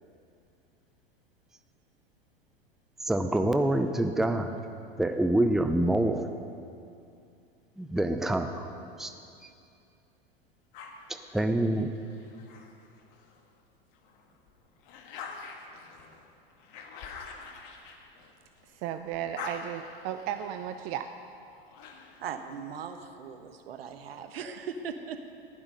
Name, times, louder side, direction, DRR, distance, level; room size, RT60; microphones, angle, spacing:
voice 1, 3.1-4.5 5.0-6.2 7.8-8.7 9.0-9.1 11.1-12.0, right 1 dB, ahead, 7 dB, 0.6 m, -26 dB
sound 1, 10.7-13.4 13.9-18.8 19.1-22.4, left 5 dB, 55° left, 1.6 m, -46 dB
voice 2, 18.7-21.1, right 10 dB, 40° right, 8 dB, 0.6 m, -34 dB
voice 3, 22.2-25.3, right 6 dB, 75° right, 8 dB, 1.1 m, -39 dB
15.5 x 11.0 x 5.4 m, 2.5 s
hypercardioid pair, 90°, 30 cm